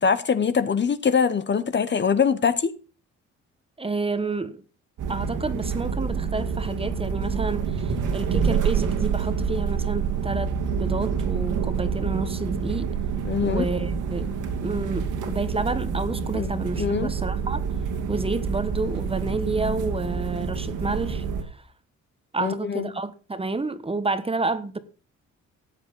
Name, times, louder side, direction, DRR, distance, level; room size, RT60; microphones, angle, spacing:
voice 1, 0.0-2.7 13.2-13.7 16.3-17.1 22.4-22.9, left 6 dB, 35° left, 1.0 m, -23 dB
voice 2, 3.8-4.6 5.1-12.9 13.4-14.3 14.6-17.6 18.1-21.2 22.3-24.8, right 3 dB, 20° right, 1.3 m, -29 dB
sound 1, 5.0-21.4, right 6 dB, 80° right, 2.7 m, -27 dB
14.0 x 8.1 x 5.3 m
cardioid pair, 90°, 30 cm